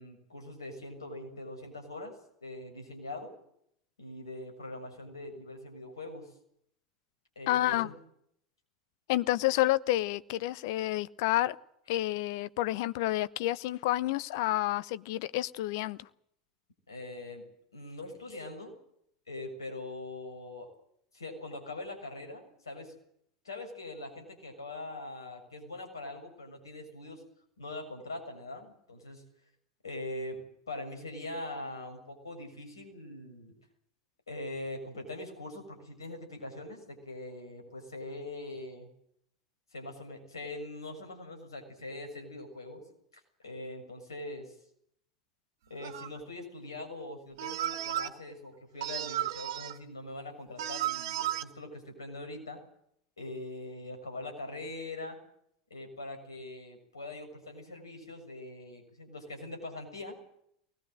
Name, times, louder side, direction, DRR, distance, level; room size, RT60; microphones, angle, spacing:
voice 1, 0.0-2.2 2.4-3.3 4.0-6.3 7.4-7.9 16.9-17.5 17.7-18.7 19.3-20.7 21.1-22.9 23.5-27.2 27.6-29.2 29.8-30.4 30.7-33.5 34.3-38.9 39.7-42.8 43.4-44.6 45.7-52.6 53.2-55.2 55.7-60.2, left 2 dB, 75° left, 5 dB, 6.9 m, -42 dB
voice 2, 7.5-7.9 9.1-11.6 11.9-16.1, left 15 dB, 55° left, 16 dB, 0.9 m, -29 dB
sound 1, 45.8-46.2 47.4-48.1 48.8-49.8 50.6-51.4, right 13 dB, 55° right, 1.9 m, -34 dB
23.0 x 20.0 x 7.9 m, 0.70 s
figure-of-eight pair, 85°, 2 cm